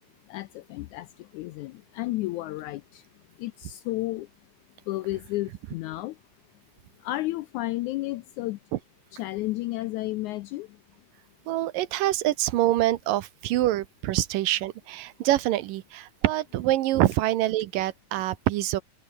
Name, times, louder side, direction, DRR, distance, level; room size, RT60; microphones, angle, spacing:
voice 1, 0.3-3.0 3.4-4.3 4.9-6.2 7.0-8.6 9.1-10.7, left 17 dB, 80° left, 1.7 m, -32 dB
voice 2, 11.5-18.8, right 15 dB, 80° right, 2.6 m, -25 dB
omnidirectional pair, 4.0 m